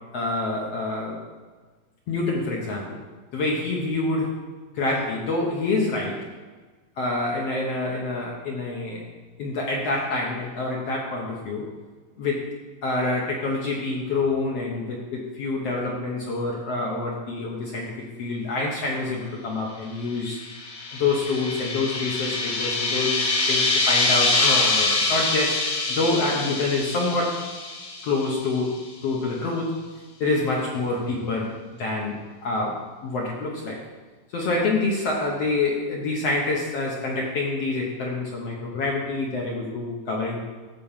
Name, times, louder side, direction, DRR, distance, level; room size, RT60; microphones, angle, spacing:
voice 1, 0.1-1.2 2.1-3.0 3.3-4.4 4.7-6.3 7.0-9.0 9.4-11.7 12.2-12.4 12.8-20.4 20.9-25.6 25.9-27.4 28.0-29.7 30.2-31.5 31.8-33.8 34.3-40.4, left 3 dB, 60° left, -2 dB, 1.8 m, -27 dB
sound 1, 20.2-28.6, left 3 dB, 80° left, 3.5 m, -25 dB
14.0 x 4.7 x 7.3 m, 1.4 s
omnidirectional pair, 4.1 m